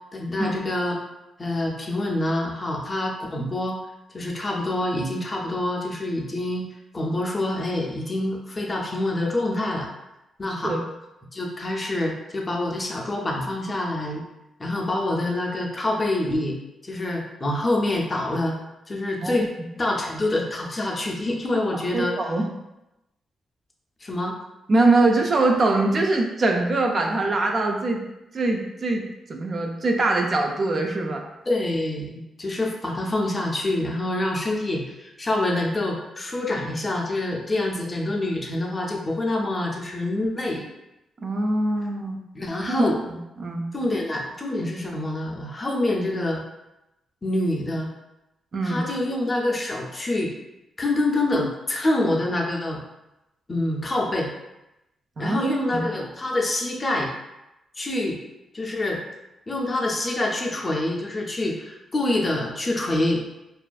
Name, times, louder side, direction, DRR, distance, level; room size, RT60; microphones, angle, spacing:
voice 1, 0.1-1.0 1.4-3.8 4.1-6.7 6.9-9.9 10.4-10.7 11.3-14.2 14.6-16.6 16.8-18.6 18.9-19.5 19.8-22.1 24.0-24.3 31.5-40.7 42.3-43.0 43.7-46.4 47.2-47.9 48.6-50.3 50.8-52.8 53.5-54.3 55.2-57.1 57.8-58.2 58.5-59.0 59.5-63.2, left 1 dB, 25° left, 0 dB, 0.4 m, -26 dB
voice 2, 21.9-22.5 24.7-28.0 28.3-31.3 41.2-42.2 42.7-43.7 48.5-48.9 55.2-55.4 55.7-56.1, right 2 dB, 40° right, 2 dB, 0.3 m, -23 dB
2.4 x 2.3 x 2.2 m, 0.94 s
cardioid pair, 105°, 0 cm